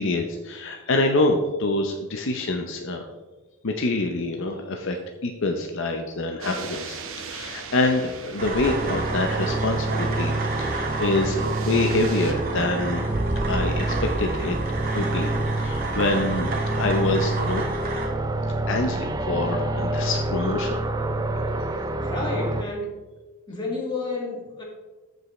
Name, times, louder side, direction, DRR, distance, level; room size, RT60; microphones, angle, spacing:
voice 1, 0.0-3.1 3.6-5.0 5.2-13.0 13.5-14.6 14.9-15.3 15.6-17.6 17.9-18.0 18.7-20.8, left 2 dB, 55° left, 4 dB, 0.6 m, -26 dB
sound 1, 6.4-12.3, right 5 dB, 60° right, 1.0 m, -39 dB
sound 2, 8.4-18.1, right 3 dB, 40° right, 1.6 m, -32 dB
sound 3, 8.6-22.6, right 2 dB, 15° right, 0.4 m, -27 dB
voice 2, 22.0-22.9 23.5-24.6, left 3 dB, 20° left, -2 dB, 1.8 m, -30 dB
14.0 x 5.4 x 3.1 m, 1.2 s
head